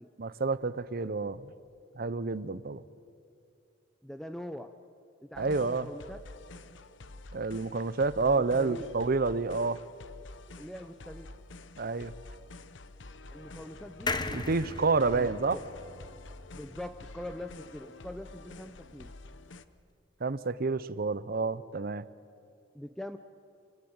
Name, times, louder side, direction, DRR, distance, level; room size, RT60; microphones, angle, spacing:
voice 1, 0.2-1.5 2.0-2.8 5.4-5.9 7.3-9.8 11.8-12.1 14.3-15.6 20.2-22.0, right 4 dB, 55° right, 16 dB, 0.7 m, -29 dB
voice 2, 4.0-4.7 5.2-6.2 8.3-8.9 10.6-11.3 13.3-14.2 15.1-15.6 16.5-19.1 22.7-23.2, left 1 dB, ahead, 8 dB, 0.7 m, -43 dB
sound 1, 5.3-19.6, left 2 dB, 80° left, 0.9 m, -48 dB
sound 2, 14.1-17.5 17.9-18.0 18.2-18.3, left 3 dB, 25° left, 1.1 m, -38 dB
27.5 x 18.0 x 8.9 m, 2.5 s
head